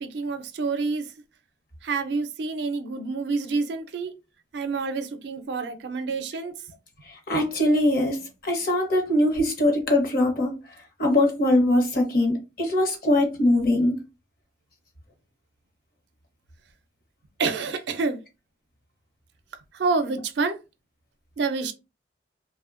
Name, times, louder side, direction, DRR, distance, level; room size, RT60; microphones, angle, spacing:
voice 1, 0.0-1.1 1.8-4.1 4.5-6.5 17.4-18.2 19.7-20.6 21.4-21.7, right 4 dB, 70° right, 0.4 m, -28 dB
voice 2, 7.3-10.6 11.0-14.0, left 1 dB, 55° left, 0.8 m, -22 dB
2.7 x 2.1 x 2.4 m
head